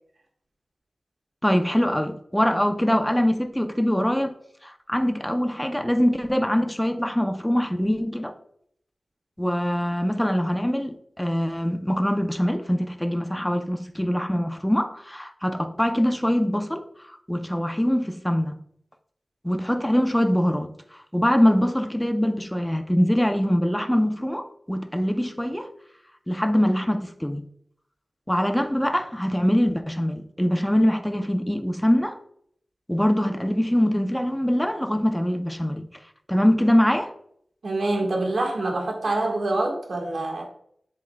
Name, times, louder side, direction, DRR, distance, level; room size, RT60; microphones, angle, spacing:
voice 1, 1.4-4.3 4.6-8.3 9.4-16.8 17.3-18.6 19.4-20.7 21.1-25.7 26.3-27.4 28.3-32.2 32.9-35.9 36.3-37.1, equal, 5° left, 0.6 m, -23 dB
voice 2, 37.6-40.4, right 2 dB, 85° right, 1.6 m, -25 dB
7.4 x 7.4 x 2.3 m
wide cardioid pair, 100°, 0 cm